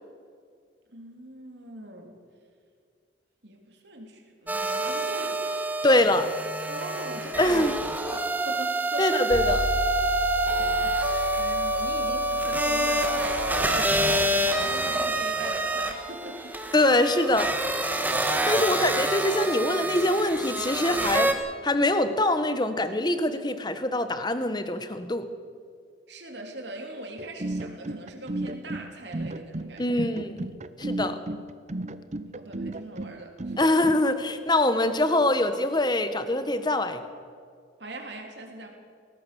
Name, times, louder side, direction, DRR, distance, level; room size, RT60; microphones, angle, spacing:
voice 1, 0.9-2.2 3.4-5.4 6.7-7.7 8.0-9.1 10.6-13.5 13.7-16.6 18.5-19.0 26.1-30.1 32.3-33.9 37.8-38.7, right 1 dB, 65° right, 2 dB, 3.6 m, -41 dB
sound 1, 4.5-21.3, right 1 dB, 10° right, 1.4 m, -28 dB
voice 2, 5.8-6.3 7.4-7.7 9.0-9.7 16.7-17.5 18.5-21.3 21.6-25.3 29.8-30.5 30.8-31.2 33.6-37.0, left 1 dB, 20° left, 10 dB, 1.3 m, -24 dB
sound 2, 9.3-13.8, equal, 75° left, 5.2 m, -28 dB
sound 3, 27.2-34.0, right 1 dB, 35° right, 0.7 m, -34 dB
21.0 x 18.0 x 7.0 m, 2.1 s
head